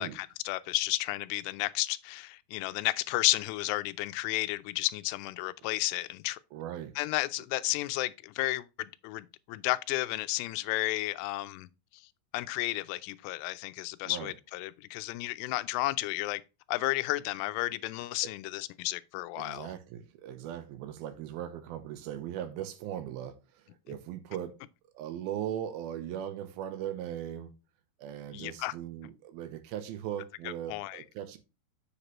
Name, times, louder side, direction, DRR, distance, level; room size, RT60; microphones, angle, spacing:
voice 1, 0.0-6.4 7.0-11.7 12.3-16.4 16.7-19.7 28.3-28.7 30.7-31.0, left 18 dB, 90° left, 2.7 m, -32 dB
voice 2, 6.5-6.9 14.0-14.3 18.2-18.3 19.4-24.6 24.9-27.5 28.0-31.4, right 10 dB, 75° right, 2.4 m, -39 dB
7.6 x 6.6 x 3.0 m
omnidirectional pair, 4.8 m